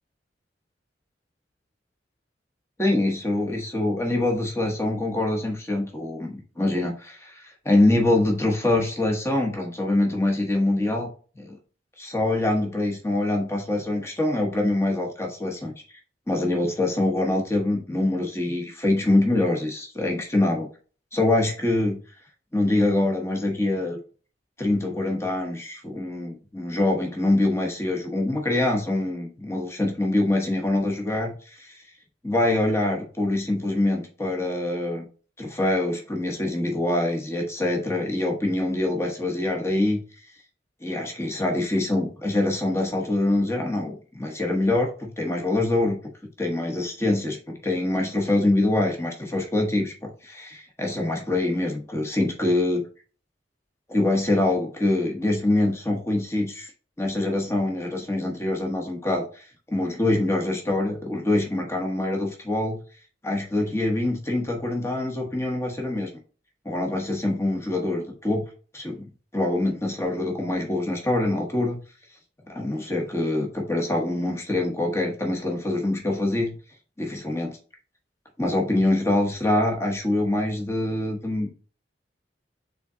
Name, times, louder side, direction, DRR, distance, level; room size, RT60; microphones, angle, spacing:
voice 1, 2.8-11.1 11.4-11.6 12.0-15.7 16.3-20.7 21.1-22.0 22.5-24.0 24.6-31.8 32.2-35.1 35.4-40.0 40.8-46.0 46.4-52.8 53.9-56.7 57.0-62.8 63.2-66.1 66.6-68.4 68.7-69.1 69.3-71.8 72.4-76.6 77.0-77.6 78.4-81.5, left 2 dB, 15° left, 1 dB, 1.0 m, -24 dB
3.7 x 3.7 x 3.6 m, 0.38 s
head